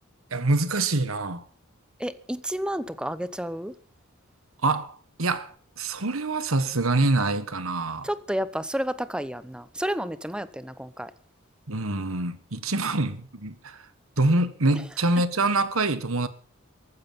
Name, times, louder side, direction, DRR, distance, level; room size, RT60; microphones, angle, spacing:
voice 1, 0.3-1.4 4.6-8.1 11.7-13.9 14.2-16.3, right 2 dB, 80° right, 1.6 m, -25 dB
voice 2, 2.0-3.7 8.0-11.1, equal, 5° right, 0.8 m, -31 dB
15.0 x 13.5 x 5.7 m
head